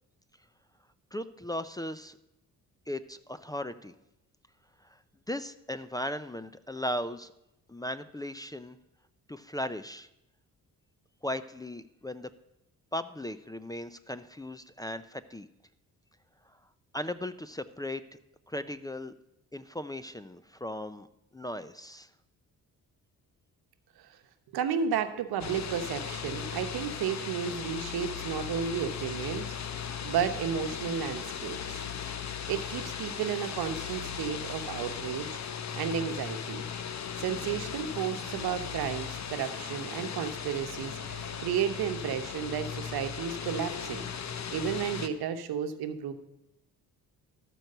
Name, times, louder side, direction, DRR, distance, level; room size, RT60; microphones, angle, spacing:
voice 1, 1.1-2.1 2.9-3.9 4.9-5.0 5.3-7.3 7.7-8.8 9.3-10.1 11.2-12.3 12.9-15.5 16.9-18.0 18.5-19.1 19.5-21.1 21.3-22.1, left 1 dB, 10° left, 13 dB, 0.4 m, -37 dB
voice 2, 24.5-29.5 30.0-31.8 32.5-35.3 35.7-36.6 37.2-44.1 44.5-46.1, right 8 dB, 85° right, 9 dB, 1.0 m, -32 dB
sound 1, 25.4-45.1, left 7 dB, 50° left, 0.9 m, -37 dB
13.0 x 4.6 x 6.6 m, 0.86 s
cardioid pair, 80°, 37 cm